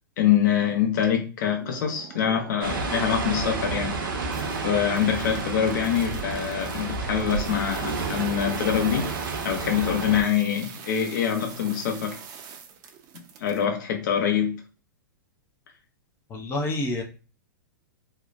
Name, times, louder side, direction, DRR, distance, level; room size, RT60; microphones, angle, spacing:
voice 1, 0.2-4.0 4.6-9.0 9.4-12.2 13.4-14.5, left 9 dB, 60° left, 0.7 m, -25 dB
sound 1, 1.6-2.9 3.3-13.6, right 7 dB, 35° right, 0.4 m, -43 dB
sound 2, 2.6-10.2, right 4 dB, 85° right, 0.7 m, -30 dB
voice 2, 16.3-17.0, left 2 dB, 20° left, 0.5 m, -28 dB
2.9 x 2.1 x 2.4 m
hypercardioid pair, 115°, 11 cm